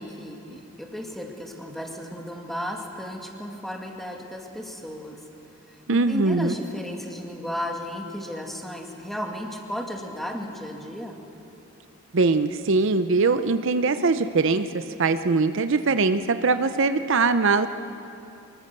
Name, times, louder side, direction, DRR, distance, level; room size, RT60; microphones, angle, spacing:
voice 1, 0.0-5.2 5.7-11.2, equal, ahead, 1 dB, 2.2 m, -34 dB
voice 2, 5.9-6.5 12.1-17.7, right 3 dB, 65° right, 10 dB, 0.7 m, -22 dB
24.5 x 21.0 x 6.8 m, 2.8 s
head